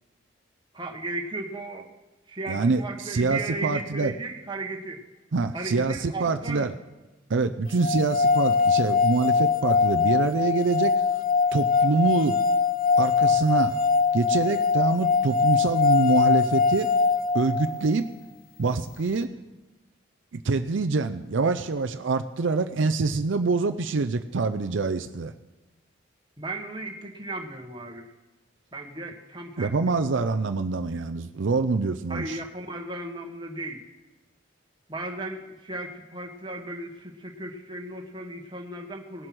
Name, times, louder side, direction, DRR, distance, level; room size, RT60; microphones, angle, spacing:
voice 1, 0.7-1.9 2.3-5.0 5.5-6.7 26.4-28.1 28.7-29.7 32.1-33.9 34.9-39.3, right 2 dB, 25° right, 2 dB, 1.4 m, -35 dB
voice 2, 2.5-4.1 5.3-6.7 7.3-11.0 11.5-12.4 13.0-13.8 14.1-16.9 17.3-18.1 18.6-19.3 20.3-25.3 29.6-32.4, right 3 dB, 70° right, 7 dB, 0.5 m, -25 dB
sound 1, 7.8-17.9, left 5 dB, 45° left, 0.9 m, -22 dB
18.5 x 7.8 x 6.0 m, 1.1 s
head